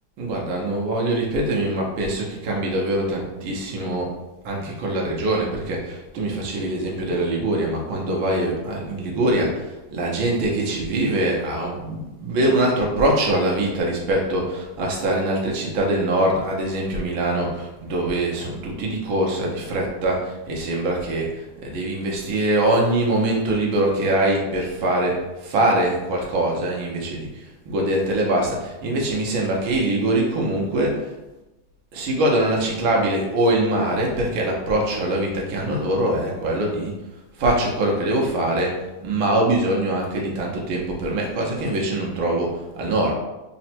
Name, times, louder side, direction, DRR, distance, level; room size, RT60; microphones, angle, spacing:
voice 1, 0.2-4.1 4.5-31.1 31.9-37.0 37.4-43.1, right 1 dB, 80° right, -1 dB, 1.6 m, -23 dB
4.0 x 2.1 x 4.2 m, 1.0 s
omnidirectional pair, 2.2 m